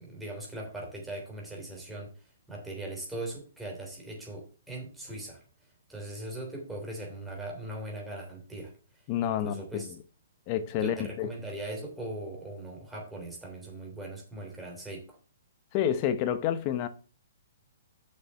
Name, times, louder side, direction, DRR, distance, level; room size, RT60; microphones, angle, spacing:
voice 1, 0.0-2.1 2.5-5.4 5.9-8.7 9.2-9.9 10.8-15.2, right 1 dB, 5° right, 3.1 m, -40 dB
voice 2, 9.1-10.0 10.5-11.3 15.7-16.9, left 10 dB, 35° left, 0.8 m, -29 dB
7.1 x 6.5 x 5.5 m
hypercardioid pair, 150°, 0 cm